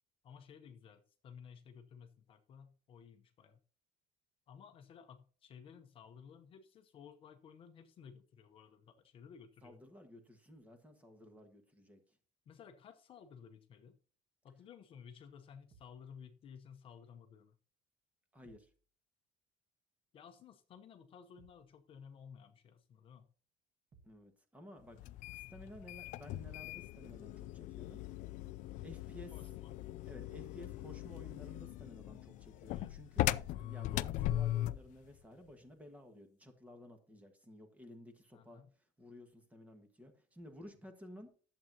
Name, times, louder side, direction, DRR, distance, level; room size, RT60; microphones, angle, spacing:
voice 1, 0.2-3.6 4.5-9.8 12.5-14.0 14.4-17.6 20.1-23.3 29.3-29.8 32.7-32.9 38.3-38.7, left 7 dB, 35° left, 0.7 m, -56 dB
voice 2, 9.6-12.0 18.3-18.7 24.0-25.0 25.3-28.0 28.8-29.3 30.1-33.3 33.5-38.6 39.0-41.3, left 1 dB, 10° right, 1.4 m, -54 dB
sound 1, 15.7-16.1 18.4-18.8 21.4-21.7 23.9-24.3, right 4 dB, 30° right, 1.3 m, -65 dB
sound 2, 25.0-34.9, left 14 dB, 55° left, 0.4 m, -39 dB
11.5 x 7.6 x 2.8 m
cardioid pair, 180°, 15 cm